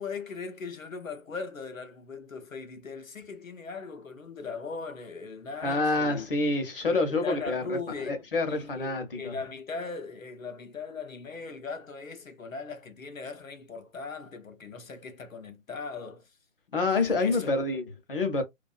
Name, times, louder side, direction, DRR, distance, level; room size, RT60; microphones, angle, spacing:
voice 1, 0.0-6.3 6.8-8.2 8.5-16.3 16.9-17.5, left 4 dB, 85° left, 0.8 m, -39 dB
voice 2, 5.6-7.8 8.1-9.3 16.7-18.4, left 3 dB, 45° left, 0.8 m, -27 dB
2.4 x 2.2 x 2.3 m
figure-of-eight pair, 150°, 39 cm